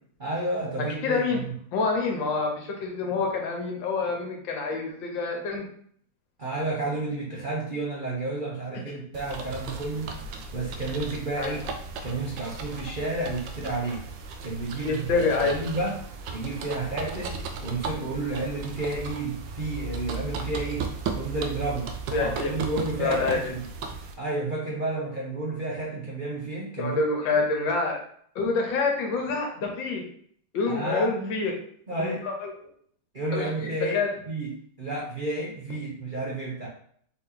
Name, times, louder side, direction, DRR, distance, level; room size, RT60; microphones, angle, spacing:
voice 1, 0.2-1.5 6.4-10.1 10.5-11.7 12.0-14.0 14.4-16.0 16.3-20.9 21.1-21.9 22.2-23.6 24.2-27.0 30.7-31.4 31.9-32.3 33.1-34.0 34.3-36.7, right 2 dB, 55° right, -4 dB, 0.5 m, -31 dB
voice 2, 0.8-1.4 1.7-5.7 11.4-11.6 14.8-15.6 22.1-22.5 23.0-23.4 26.8-28.0 28.3-30.0 30.5-31.5 32.0-32.5 33.3-33.5 33.9-34.1, left 4 dB, 70° left, 1 dB, 1.6 m, -27 dB
sound 1, 9.1-24.1, right 4 dB, 75° right, 1.2 m, -36 dB
4.1 x 2.9 x 3.9 m, 0.62 s
omnidirectional pair, 2.2 m